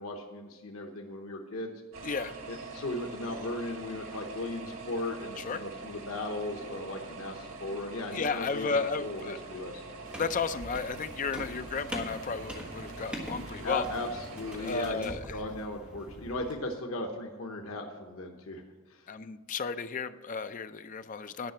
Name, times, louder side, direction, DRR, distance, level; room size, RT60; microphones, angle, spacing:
voice 1, 0.0-1.8 2.5-9.8 13.6-18.6 18.9-19.1, left 2 dB, 90° left, 2 dB, 0.9 m, -37 dB
sound 1, 1.9-14.9, right 3 dB, 90° right, 1.8 m, -44 dB
voice 2, 2.0-2.4 5.4-5.6 8.1-9.4 10.1-13.8 14.6-15.4 19.1-21.5, left 5 dB, 40° left, 10 dB, 0.5 m, -33 dB
sound 2, 10.0-16.5, right 1 dB, 5° right, 1.6 m, -43 dB
10.5 x 5.7 x 7.8 m, 1.4 s
head